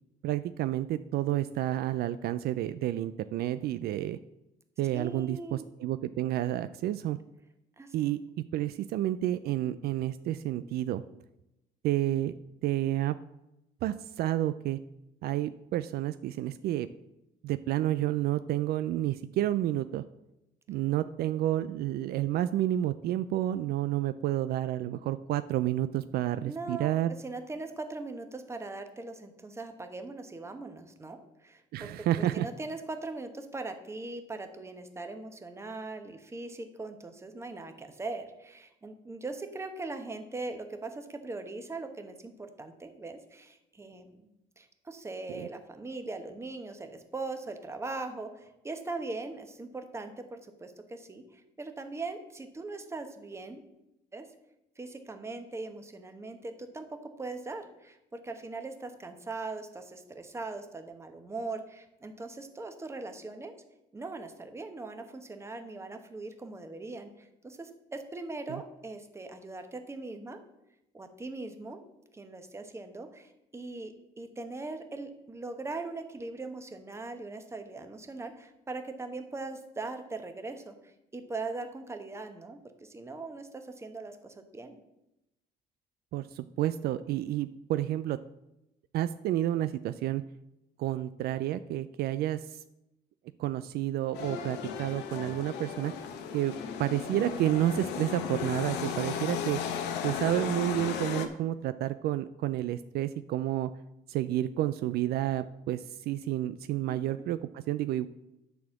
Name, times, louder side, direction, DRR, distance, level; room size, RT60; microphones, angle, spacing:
voice 1, 0.2-4.2 4.8-7.2 7.9-11.0 11.8-12.3 12.6-13.2 13.8-14.8 15.2-16.9 17.4-20.0 20.7-27.1 31.7-32.5 45.3-45.5 68.5-68.6 86.1-88.2 88.9-90.2 90.8-92.6 93.4-95.9 96.3-96.5 96.8-99.6 100.0-103.7 104.1-108.1, right 13 dB, 65° right, 13 dB, 0.4 m, -30 dB
voice 2, 4.9-5.6 7.8-7.9 26.4-26.9 27.2-31.9 32.2-53.6 54.1-54.3 54.8-63.6 63.9-70.4 70.9-71.8 72.1-84.8 106.9-107.3, right 3 dB, 15° right, 7 dB, 1.0 m, -40 dB
sound 1, 94.1-101.3, left 7 dB, 85° left, 0.9 m, -35 dB
9.4 x 4.2 x 7.1 m, 0.89 s
cardioid pair, 110°, 17 cm